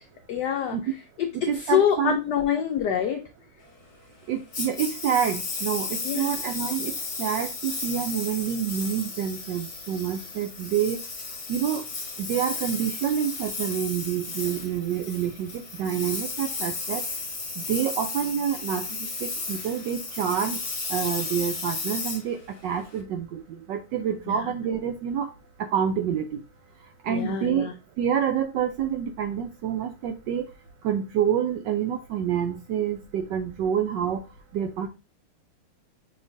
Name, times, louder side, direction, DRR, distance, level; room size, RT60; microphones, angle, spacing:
voice 1, 0.3-0.8 1.2-3.2 6.0-6.3 24.3-24.4 27.1-27.7, left 9 dB, 85° left, 5 dB, 0.9 m, -25 dB
voice 2, 1.5-2.2 4.3-6.9 7.2-11.0 11.5-11.8 12.2-17.0 17.6-20.6 20.9-22.4 22.6-25.3 25.6-26.4 27.0-27.7 28.0-30.5 30.8-34.2 34.5-34.9, right 8 dB, 75° right, 5 dB, 1.0 m, -27 dB
Engine, 4.5-23.0, left 3 dB, 45° left, 0.9 m, -34 dB
6.1 x 2.9 x 2.6 m, 0.28 s
omnidirectional pair, 2.4 m